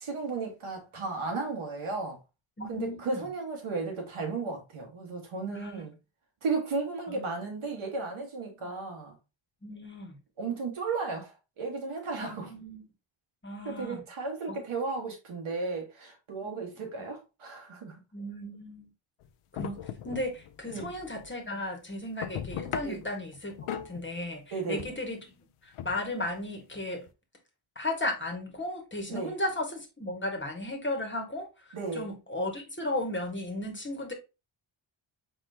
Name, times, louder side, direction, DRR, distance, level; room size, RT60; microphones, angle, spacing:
voice 1, 0.0-2.2 2.7-5.9 6.4-9.2 10.4-12.5 13.7-17.9 20.7-20.9 22.8-23.0 24.5-24.9 29.1-29.3 31.7-32.1, right 4 dB, 85° right, 1.6 m, -34 dB
voice 2, 2.6-3.2 5.5-5.8 7.1-7.2 9.6-10.2 12.2-12.8 13.4-14.0 16.4-16.5 18.1-18.9 19.5-19.8 20.0-25.3 25.8-27.0 27.7-31.5 31.9-34.1, left 1 dB, 25° left, 1.3 m, -35 dB
sound 1, 19.2-19.3 19.6-21.7 22.0-24.4 24.8-25.1 25.7-27.1, left 9 dB, 85° left, 0.6 m, -39 dB
4.3 x 3.7 x 2.7 m
cardioid pair, 70°, 49 cm